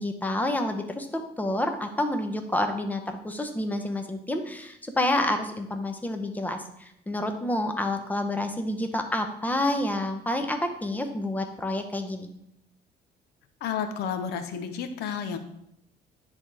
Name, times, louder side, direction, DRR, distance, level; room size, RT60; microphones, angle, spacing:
voice 1, 0.0-12.3, left 1 dB, 10° left, 6 dB, 0.8 m, -29 dB
voice 2, 13.6-15.4, left 7 dB, 75° left, 8 dB, 0.7 m, -31 dB
9.8 x 3.6 x 3.4 m, 0.75 s
cardioid pair, 110°, 17 cm